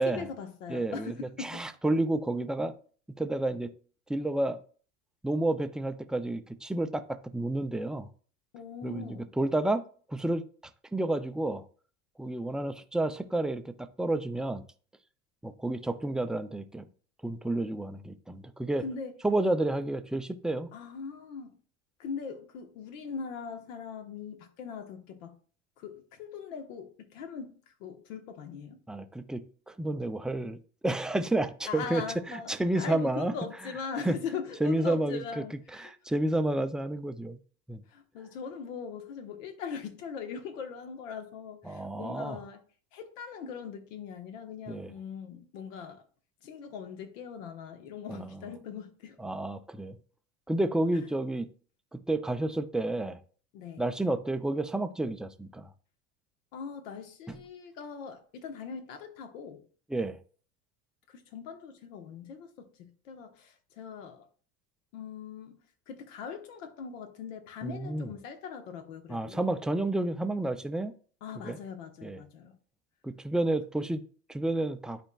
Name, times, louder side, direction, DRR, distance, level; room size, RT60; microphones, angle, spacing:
voice 1, 0.0-1.6 8.5-9.3 18.8-19.2 20.7-21.6 22.0-25.4 25.8-28.8 31.7-35.9 37.9-42.6 42.9-46.0 46.4-49.2 53.5-53.8 56.5-59.6 61.1-64.3 64.9-65.5 65.9-69.4 71.2-72.6, left 6 dB, 80° left, 1.3 m, -41 dB
voice 2, 0.7-1.1 1.4-2.7 3.2-3.7 4.1-4.6 5.2-8.1 8.8-9.1 9.4-9.8 10.1-10.4 10.9-11.6 12.2-14.6 15.4-16.8 17.2-18.8 19.2-20.7 28.9-30.6 30.8-32.0 32.3-33.3 34.1-34.2 34.6-35.2 35.7-37.4 37.7-37.8 41.7-42.4 44.7-44.9 48.1-48.3 49.2-50.0 50.5-51.5 51.9-53.2 53.8-55.7 57.3-57.4 59.9-60.2 67.6-68.1 69.1-70.9 71.4-71.6 72.0-72.2 73.0-74.0 74.3-75.0, right 2 dB, ahead, 0.3 m, -30 dB
11.5 x 4.4 x 2.3 m
supercardioid pair, 100°, 38 cm